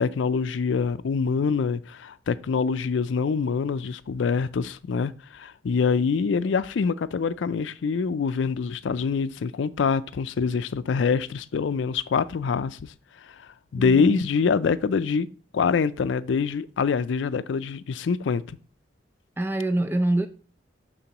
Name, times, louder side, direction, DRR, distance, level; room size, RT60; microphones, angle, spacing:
voice 1, 0.0-12.9 13.7-15.3 15.5-18.6, left 5 dB, 85° left, 0.4 m, -25 dB
voice 2, 13.8-14.2 19.4-20.3, right 1 dB, 10° right, 0.4 m, -25 dB
11.0 x 3.9 x 2.9 m
head